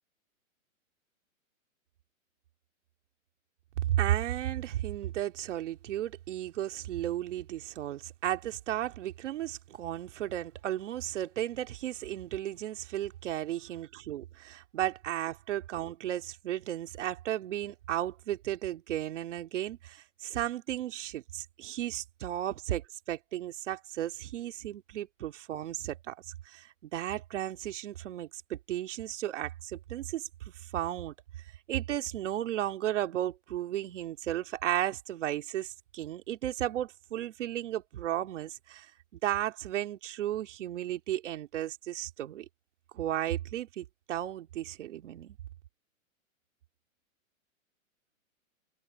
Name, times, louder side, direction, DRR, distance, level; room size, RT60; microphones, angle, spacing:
voice 1, 3.8-31.1 31.7-42.4 42.9-45.4, right 12 dB, 60° right, 2.8 m, -34 dB
open air
hypercardioid pair, 155°, 41 cm